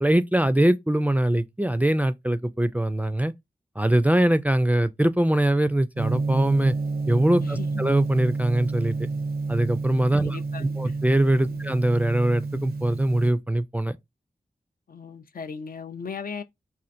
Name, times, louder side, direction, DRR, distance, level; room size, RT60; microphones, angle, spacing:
voice 1, 0.0-3.3 3.8-6.7 7.1-9.1 9.5-14.0, right 1 dB, 10° right, 0.3 m, -22 dB
Gong, 6.0-13.3, right 3 dB, 75° right, 0.5 m, -29 dB
voice 2, 7.4-7.8 10.1-11.0 11.5-11.6 14.9-16.4, left 6 dB, 65° left, 0.4 m, -38 dB
4.3 x 2.4 x 2.5 m
cardioid pair, 50°, 16 cm